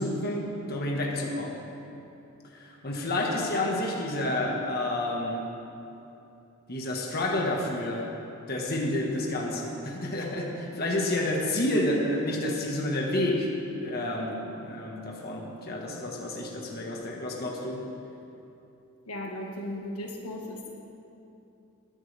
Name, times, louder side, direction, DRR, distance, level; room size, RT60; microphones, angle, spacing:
voice 1, 0.0-1.6 2.5-5.5 6.7-8.2 8.5-17.9, left 1 dB, 45° left, -1 dB, 1.6 m, -29 dB
voice 2, 19.1-20.7, left 1 dB, 75° left, 0 dB, 1.6 m, -36 dB
21.0 x 11.5 x 3.5 m, 2.8 s
head